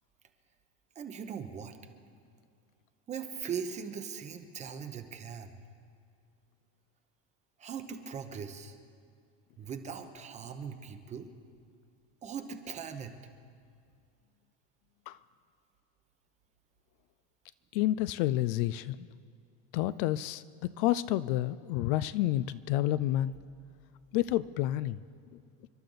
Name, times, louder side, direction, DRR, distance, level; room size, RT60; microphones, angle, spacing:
voice 1, 1.0-1.8 3.1-5.5 7.6-8.8 9.6-11.3 12.2-13.2, right 7 dB, 20° right, 7 dB, 0.9 m, -40 dB
voice 2, 17.7-19.1 19.7-23.3 24.1-25.0, left 14 dB, 55° left, 16 dB, 0.4 m, -29 dB
29.0 x 12.0 x 4.0 m, 2.4 s
supercardioid pair, 160°, 33 cm